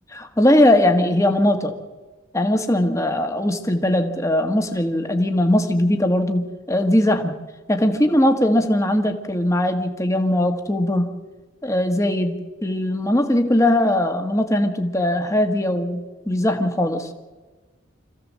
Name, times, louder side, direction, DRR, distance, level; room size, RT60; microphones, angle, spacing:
voice 1, 0.2-1.8 2.3-7.3 7.7-11.1 11.6-17.1, left 1 dB, 15° left, 5 dB, 1.5 m, -20 dB
26.5 x 15.0 x 7.5 m, 1.3 s
head